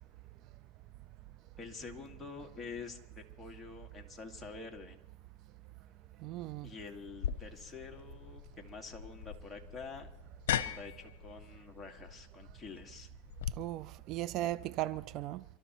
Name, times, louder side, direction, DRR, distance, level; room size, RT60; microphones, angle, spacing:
voice 1, 1.6-5.0 6.6-10.1 10.5-13.1, left 4 dB, 15° left, 1.9 m, -47 dB
voice 2, 6.2-6.7 13.6-15.4, right 14 dB, 50° right, 0.4 m, -37 dB
sound 1, 7.2-13.5, left 10 dB, 80° left, 0.8 m, -39 dB
27.0 x 13.0 x 3.0 m
supercardioid pair, 115°, 0 cm